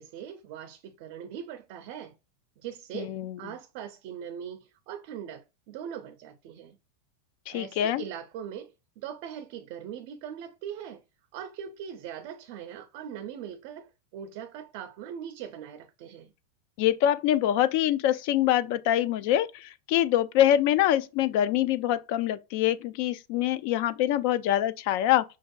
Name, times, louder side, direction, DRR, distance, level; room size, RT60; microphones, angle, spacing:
voice 1, 0.0-2.1 2.6-6.8 7.5-11.0 11.3-16.3, right 9 dB, 50° right, 0.5 m, -41 dB
voice 2, 2.9-3.4 7.5-8.0 16.8-25.2, left 12 dB, 50° left, 0.4 m, -25 dB
5.7 x 2.6 x 2.3 m
supercardioid pair, 155°, 0 cm